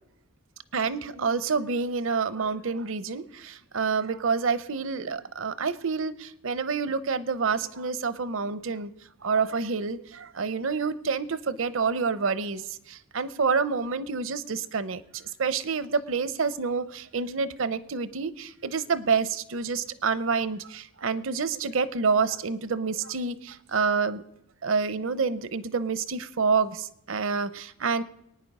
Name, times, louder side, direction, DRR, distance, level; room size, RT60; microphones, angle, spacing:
voice 1, 0.7-8.9 9.2-24.2 24.6-28.0, right 5 dB, 65° right, 15 dB, 0.7 m, -28 dB
22.5 x 9.6 x 5.4 m, 0.77 s
head